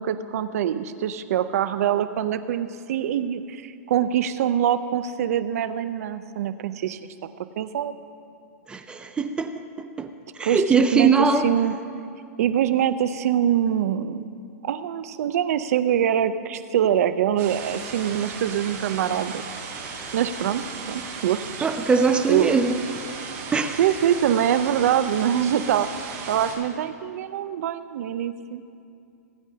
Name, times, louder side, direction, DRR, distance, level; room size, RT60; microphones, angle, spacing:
voice 1, 0.0-7.0 7.6-7.9 10.4-11.7 12.4-14.3 14.6-19.4 20.1-21.7 22.3-22.6 23.8-25.9 26.3-28.6, right 10 dB, 65° right, 12 dB, 0.6 m, -24 dB
voice 2, 8.7-10.1 10.4-11.5 21.6-22.8 23.5-23.8, right 4 dB, 10° right, 8 dB, 0.4 m, -22 dB
sound 1, 17.4-26.5, right 5 dB, 35° right, 2.9 m, -36 dB
19.0 x 9.5 x 2.8 m, 2.4 s
hypercardioid pair, 140°, 9 cm